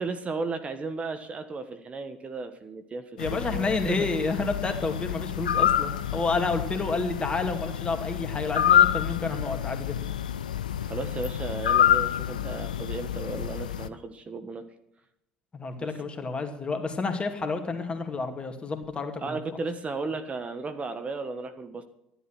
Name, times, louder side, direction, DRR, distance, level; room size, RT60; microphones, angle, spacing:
voice 1, 0.0-3.0 3.3-4.1 10.8-14.6 15.8-15.9 19.2-21.8, right 3 dB, 30° right, 9 dB, 1.4 m, -34 dB
sound 1, 3.2-13.9, left 10 dB, 85° left, 0.6 m, -27 dB
voice 2, 3.2-10.0 15.5-19.4, left 3 dB, 25° left, 5 dB, 2.6 m, -30 dB
12.5 x 11.0 x 6.1 m, 0.81 s
hypercardioid pair, 65°, 4 cm